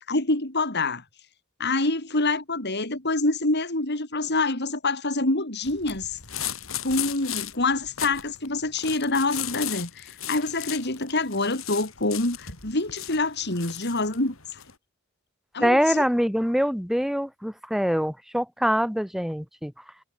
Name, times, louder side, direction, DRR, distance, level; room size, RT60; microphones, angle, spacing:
voice 1, 0.1-1.0 1.6-6.2 6.8-14.6 15.5-16.0, left 2 dB, 55° left, 5.0 m, -26 dB
sound 1, 5.6-14.7, left 11 dB, 75° left, 7.3 m, -36 dB
voice 2, 15.6-19.7, equal, ahead, 2.3 m, -24 dB
head